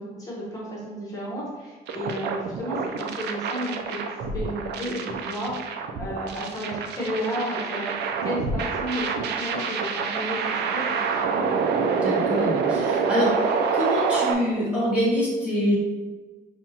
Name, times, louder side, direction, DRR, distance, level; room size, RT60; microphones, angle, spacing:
voice 1, 0.0-4.0 4.3-11.5, equal, 20° left, -6 dB, 0.9 m, -33 dB
sound 1, 1.9-14.3, right 5 dB, 75° right, 0.4 m, -27 dB
voice 2, 12.0-13.3 13.7-15.8, equal, 5° right, -8 dB, 1.3 m, -25 dB
5.7 x 2.3 x 2.8 m, 1.3 s
cardioid pair, 175°, 17 cm